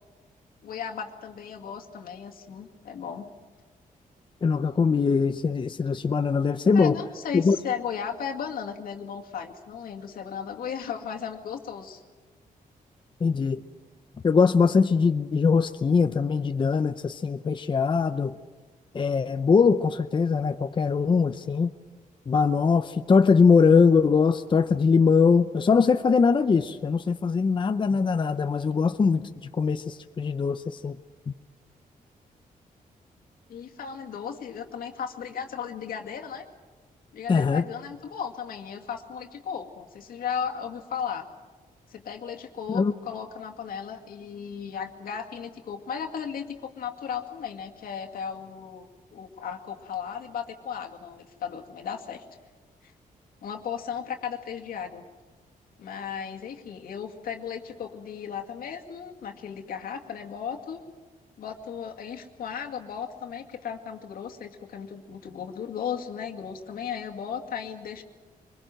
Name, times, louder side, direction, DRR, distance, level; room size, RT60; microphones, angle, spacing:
voice 1, 0.6-3.3 6.6-12.0 33.5-36.5 37.1-41.3 41.9-48.9 49.1-52.2 52.8-52.9 53.4-55.0 55.8-60.8 61.4-68.0, left 7 dB, 80° left, 2 dB, 2.2 m, -35 dB
voice 2, 4.4-6.9 7.3-7.6 13.2-13.6 14.2-18.3 18.9-21.7 22.3-29.2 29.5-30.9 37.3-37.6 42.7-42.9, left 5 dB, 35° left, 9 dB, 0.7 m, -22 dB
24.5 x 21.5 x 7.8 m, 1.3 s
cardioid pair, 110°, 15 cm